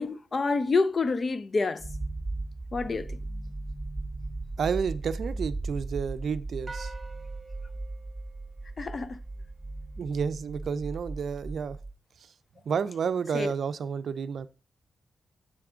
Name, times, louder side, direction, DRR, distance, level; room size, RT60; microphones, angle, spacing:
voice 1, 0.0-1.8 2.7-3.1 8.8-9.2 13.3-13.5, left 4 dB, 45° left, 0.5 m, -27 dB
sound 1, 1.8-11.9, right 2 dB, 5° right, 1.6 m, -37 dB
voice 2, 4.6-6.9 10.0-11.8 12.7-14.5, right 6 dB, 70° right, 0.4 m, -30 dB
sound 2, 6.7-9.2, right 3 dB, 25° right, 1.4 m, -47 dB
7.5 x 3.5 x 4.9 m
cardioid pair, 75°, 0 cm